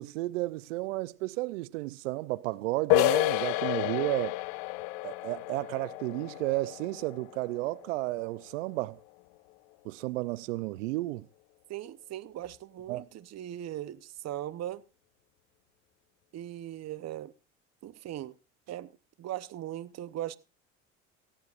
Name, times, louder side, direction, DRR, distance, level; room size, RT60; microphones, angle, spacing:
voice 1, 0.0-4.4 5.0-9.0 9.8-11.3 12.9-13.0, right 20 dB, 80° right, 0.6 m, -32 dB
sound 1, 2.9-8.4, left 21 dB, 70° left, 0.7 m, -30 dB
voice 2, 11.7-14.8 16.3-17.3 17.8-18.3 18.7-18.9 19.2-20.4, right 13 dB, 45° right, 0.9 m, -39 dB
18.5 x 14.5 x 2.5 m
hypercardioid pair, 70°, 37 cm